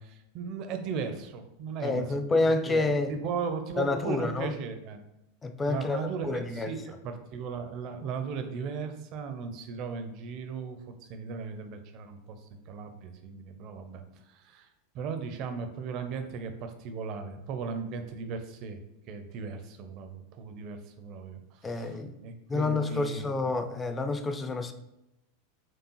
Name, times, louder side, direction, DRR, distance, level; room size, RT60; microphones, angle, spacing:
voice 1, 0.0-2.3 2.7-5.0 5.7-14.7 14.9-18.8 19.1-23.3, right 5 dB, 45° right, 7 dB, 0.5 m, -37 dB
voice 2, 1.8-3.2 3.8-4.5 5.4-6.7 21.6-22.2 22.5-24.7, left 3 dB, 15° left, 8 dB, 0.4 m, -28 dB
4.5 x 2.4 x 3.0 m, 0.88 s
figure-of-eight pair, 85°, 0 cm